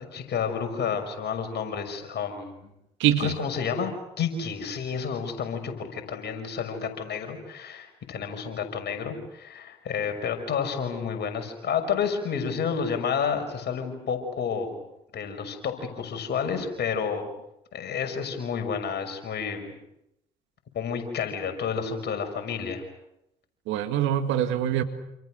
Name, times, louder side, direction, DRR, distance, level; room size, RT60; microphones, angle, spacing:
voice 1, 0.0-2.7 3.2-14.8 15.1-17.3 17.7-19.7 20.7-22.8, left 6 dB, 60° left, 6 dB, 6.3 m, -30 dB
voice 2, 3.0-3.3 23.7-24.8, right 11 dB, 80° right, 8 dB, 2.0 m, -24 dB
28.5 x 28.5 x 6.5 m, 0.84 s
hypercardioid pair, 45°, 19 cm